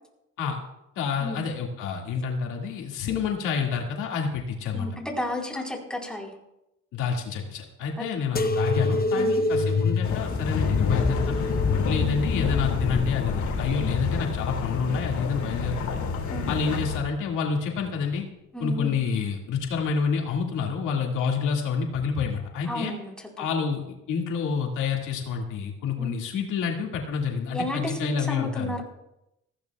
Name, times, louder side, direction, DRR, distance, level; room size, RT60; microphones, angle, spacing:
voice 1, 1.0-4.9 5.5-5.6 6.9-11.5 11.8-16.0 16.5-18.3 18.6-22.9 23.4-28.7, left 6 dB, 90° left, 0 dB, 2.2 m, -28 dB
voice 2, 4.7-6.3 8.0-8.1 9.1-9.4 16.3-16.5 18.5-19.0 22.7-23.5 26.0-26.1 27.5-28.8, left 1 dB, 5° left, 0 dB, 4.1 m, -32 dB
sound 1, 8.3-15.6 16.1-16.9 17.6-18.1 19.1-19.2, left 3 dB, 30° left, 0.8 m, -28 dB
sound 2, 10.0-17.0, left 5 dB, 75° left, 2.6 m, -28 dB
19.0 x 15.5 x 2.4 m, 0.88 s
cardioid pair, 90°, 30 cm